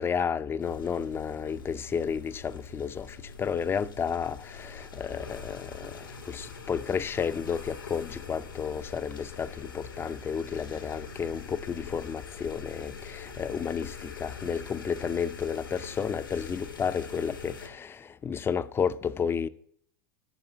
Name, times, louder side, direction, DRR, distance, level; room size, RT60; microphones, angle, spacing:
voice 1, 0.0-6.0 6.3-19.5, left 7 dB, 20° left, 0.5 m, -32 dB
sound 1, 0.6-17.7, left 5 dB, 85° left, 1.6 m, -44 dB
10.0 x 6.7 x 7.3 m
hypercardioid pair, 95°, 11 cm